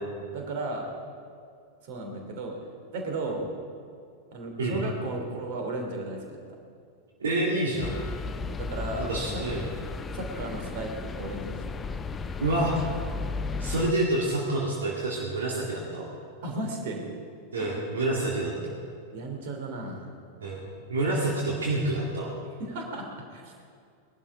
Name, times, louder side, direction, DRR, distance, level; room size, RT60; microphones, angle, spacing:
voice 1, 0.1-0.9 1.8-2.5 2.9-3.4 4.3-6.4 8.4-9.1 9.3-9.4 10.1-10.9 11.2-11.5 16.4-17.0 17.6-17.8 19.1-20.1 22.6-23.1 23.3-23.5, right 2 dB, 50° right, 2 dB, 3.2 m, -34 dB
voice 2, 7.2-8.0 9.0-9.7 12.4-12.8 13.6-16.1 17.5-18.7 20.4-22.3, right 2 dB, 65° right, -3 dB, 2.3 m, -28 dB
sound 1, 7.8-13.9, left 4 dB, 20° left, 0.6 m, -34 dB
20.0 x 12.0 x 5.0 m, 2.4 s
figure-of-eight pair, 90°, 0 cm